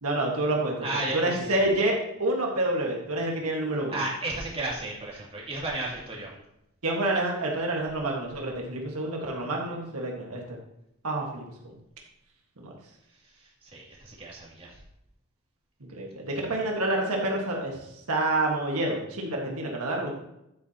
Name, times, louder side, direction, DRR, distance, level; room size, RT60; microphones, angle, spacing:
voice 1, 0.0-4.0 6.8-10.6 11.0-11.4 12.6-12.7 15.8-17.8 18.1-20.1, right 1 dB, 90° right, 0 dB, 1.6 m, -28 dB
voice 2, 0.8-1.5 3.9-6.3 13.6-14.7, right 2 dB, 25° right, -5 dB, 2.5 m, -33 dB
9.5 x 8.5 x 2.9 m, 0.84 s
head